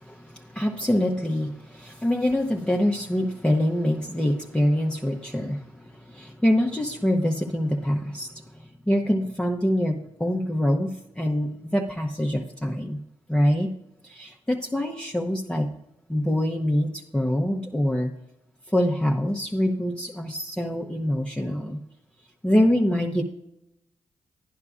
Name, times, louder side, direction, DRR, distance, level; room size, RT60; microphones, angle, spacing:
voice 1, 0.1-13.0 13.3-13.7 14.0-15.7 16.1-18.1 18.7-21.8 22.4-23.2, equal, 5° left, 0 dB, 0.9 m, -25 dB
11.0 x 10.5 x 2.4 m, 0.89 s
supercardioid pair, 45°, 13 cm